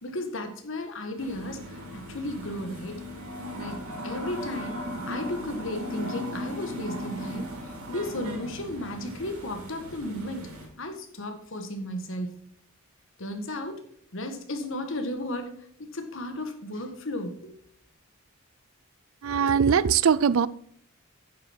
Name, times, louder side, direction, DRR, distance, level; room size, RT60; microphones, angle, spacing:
voice 1, 0.0-3.0 3.6-7.5 7.9-10.5 10.8-12.4 13.2-13.8 14.1-15.5 15.8-17.5, left 1 dB, 60° left, 6 dB, 1.6 m, -34 dB
sound 1, 1.2-10.7, equal, 90° right, 3.7 m, -37 dB
voice 2, 19.2-20.5, right 7 dB, 65° right, 19 dB, 0.4 m, -21 dB
9.4 x 7.6 x 4.5 m, 0.64 s
head